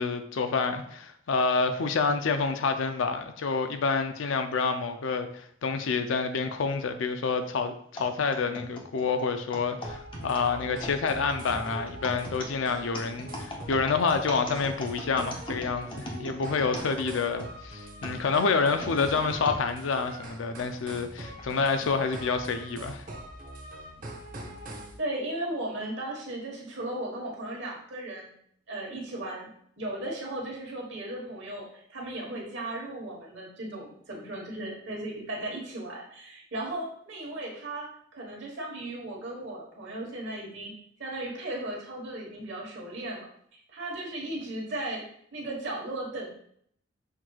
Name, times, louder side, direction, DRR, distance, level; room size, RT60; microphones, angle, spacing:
voice 1, 0.0-23.0, left 4 dB, 70° left, 8 dB, 0.4 m, -28 dB
sound 1, 8.0-17.5 18.0-19.6 20.2-20.3 21.2-21.4, equal, 25° left, 0.6 m, -39 dB
sound 2, 9.8-25.0, right 1 dB, 40° right, 0.7 m, -43 dB
voice 2, 25.0-28.3 28.7-29.5 29.8-40.7 41.0-43.3 43.5-45.0 45.3-46.3, right 1 dB, 60° right, -2 dB, 1.1 m, -36 dB
5.7 x 3.1 x 2.3 m, 0.66 s
head